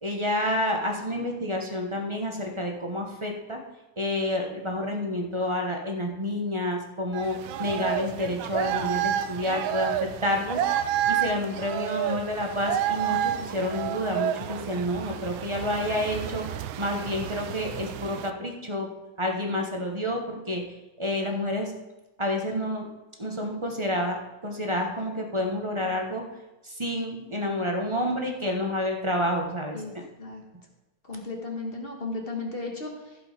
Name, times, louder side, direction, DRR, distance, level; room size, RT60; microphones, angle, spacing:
voice 1, 0.0-3.6 4.0-16.4 16.8-18.9 19.2-20.6 21.0-21.7 22.2-22.9 23.2-26.2 26.6-29.8, left 1 dB, 20° right, 2 dB, 0.8 m, -29 dB
sound 1, 7.1-18.3, right 10 dB, 80° right, 1.4 m, -30 dB
voice 2, 31.0-33.3, left 3 dB, 30° left, 1 dB, 1.5 m, -35 dB
15.0 x 5.2 x 5.1 m, 1.1 s
omnidirectional pair, 2.2 m